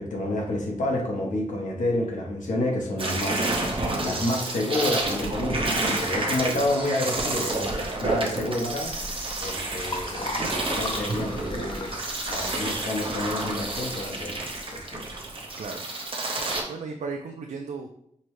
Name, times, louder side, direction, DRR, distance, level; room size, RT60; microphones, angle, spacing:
voice 1, 0.0-8.9 9.4-11.9 12.3-15.1, left 1 dB, 85° left, -1 dB, 0.9 m, -29 dB
sound 1, 3.0-16.6, right 2 dB, 45° right, 0.7 m, -29 dB
Liquid, 8.6-15.3, left 2 dB, 40° left, 0.6 m, -38 dB
voice 2, 16.7-17.9, right 4 dB, 75° right, 3 dB, 0.4 m, -36 dB
5.2 x 2.1 x 3.1 m, 0.72 s
wide cardioid pair, 135°, 13 cm